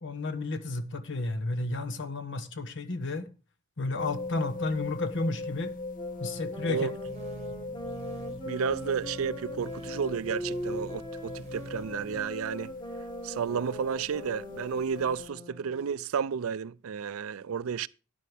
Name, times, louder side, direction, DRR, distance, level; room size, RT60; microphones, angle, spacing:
voice 1, 0.0-3.3 3.8-5.7 6.2-6.9, left 2 dB, 60° left, 1.1 m, -32 dB
sound 1, 4.0-15.3, left 3 dB, 40° left, 0.5 m, -40 dB
sound 2, 5.9-15.9, right 1 dB, 25° left, 2.5 m, -42 dB
sound 3, 7.1-12.2, right 2 dB, 35° right, 1.0 m, -46 dB
voice 2, 8.5-12.7 13.2-17.9, right 6 dB, 80° right, 0.4 m, -32 dB
12.5 x 9.4 x 3.4 m
head